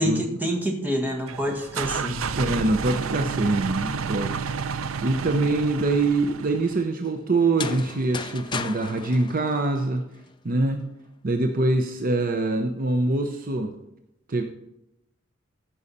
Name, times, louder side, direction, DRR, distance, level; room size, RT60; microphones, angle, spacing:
voice 1, 0.0-2.2, equal, 10° right, 1 dB, 1.6 m, -27 dB
sound 1, 1.3-6.8, right 5 dB, 85° right, 0.5 m, -31 dB
voice 2, 2.4-4.4 5.0-10.0 10.4-10.9 11.2-13.8 14.3-14.4, right 2 dB, 45° right, 5 dB, 0.7 m, -24 dB
sound 2, 7.4-10.3, left 5 dB, 25° left, 0.4 m, -35 dB
15.0 x 5.6 x 4.1 m, 0.84 s
head